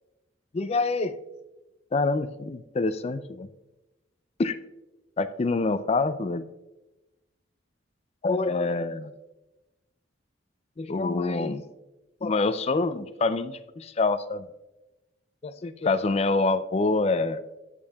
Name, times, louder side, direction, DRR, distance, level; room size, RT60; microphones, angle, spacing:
voice 1, 0.5-1.2 1.9-3.5 4.4-4.6 5.2-6.4 8.2-9.1 10.8-11.6 12.2-14.5 15.4-17.4, left 3 dB, 30° left, 12 dB, 0.4 m, -26 dB
11.0 x 8.3 x 2.3 m, 1.0 s
head